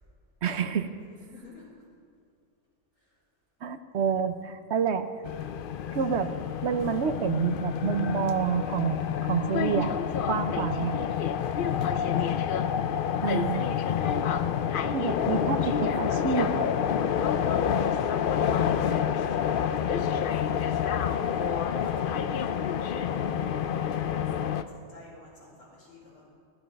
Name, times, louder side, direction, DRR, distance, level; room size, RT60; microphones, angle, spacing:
voice 1, 0.4-0.9 3.6-5.1 5.9-6.3 6.6-9.9 10.3-10.9 13.2-13.7 14.9-16.7, right 7 dB, 65° right, 9 dB, 1.0 m, -28 dB
voice 2, 1.1-1.7 3.0-3.2 11.4-12.6 21.1-23.4 23.7-26.3, left 1 dB, 75° left, -12 dB, 3.6 m, -50 dB
sound 1, 5.2-24.6, left 8 dB, 60° left, 0.6 m, -28 dB
15.0 x 12.5 x 5.2 m, 2.3 s
omnidirectional pair, 1.3 m